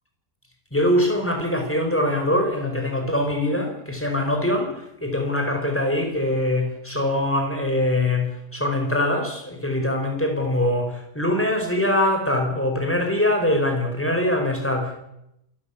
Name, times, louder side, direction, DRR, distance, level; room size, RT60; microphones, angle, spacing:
voice 1, 0.7-15.0, left 1 dB, 5° left, 3 dB, 4.9 m, -23 dB
27.5 x 13.5 x 8.7 m, 0.84 s
omnidirectional pair, 1.8 m